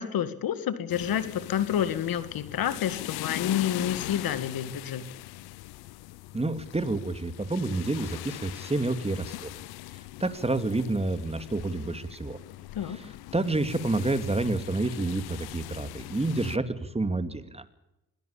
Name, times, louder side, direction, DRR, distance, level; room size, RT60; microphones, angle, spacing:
voice 1, 0.0-5.0 12.7-13.0, left 10 dB, 70° left, 13 dB, 2.1 m, -29 dB
sound 1, 0.9-16.6, left 17 dB, 85° left, 0.8 m, -41 dB
voice 2, 6.3-9.5 10.2-12.4 12.9-13.0 13.3-17.6, right 2 dB, 15° right, 10 dB, 2.5 m, -29 dB
21.5 x 17.0 x 8.7 m, 0.91 s
supercardioid pair, 65°, 37 cm